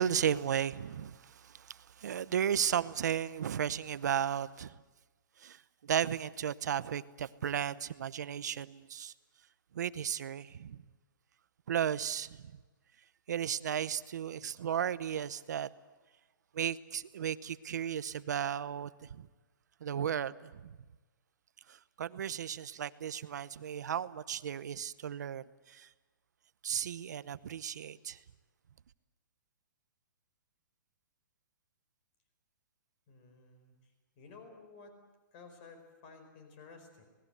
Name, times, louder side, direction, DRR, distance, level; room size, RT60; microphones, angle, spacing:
voice 1, 0.0-4.8 5.4-9.1 9.7-10.8 11.7-12.4 13.3-15.7 16.5-19.3 19.8-20.8 21.7-25.9 26.6-28.2, right 9 dB, 55° right, 16 dB, 0.9 m, -35 dB
voice 2, 33.1-33.7 34.2-34.9 35.3-37.0, left 4 dB, 25° left, 6 dB, 4.6 m, -54 dB
27.0 x 19.5 x 8.0 m, 1.2 s
hypercardioid pair, 175°, 11 cm